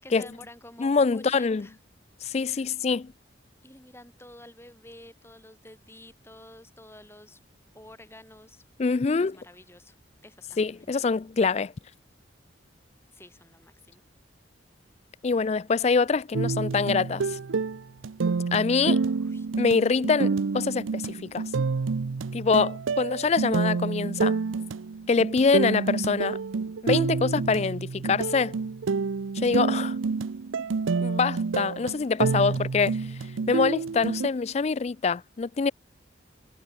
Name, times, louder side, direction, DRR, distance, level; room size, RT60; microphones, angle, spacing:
voice 1, 0.0-1.8 2.4-2.7 3.6-7.4 7.7-8.6 9.2-9.9 10.2-11.1 13.1-14.0 19.1-19.5 33.0-33.2, left 1 dB, 10° left, 6.8 m, -50 dB
voice 2, 0.8-1.7 2.2-3.1 8.8-9.4 10.6-11.7 15.2-17.4 18.5-19.0 19.6-21.4 22.3-24.4 25.1-26.4 26.8-28.5 29.3-30.0 31.0-33.0 33.5-35.7, left 4 dB, 35° left, 0.3 m, -25 dB
sound 1, 16.3-34.3, right 4 dB, 90° right, 0.6 m, -28 dB
head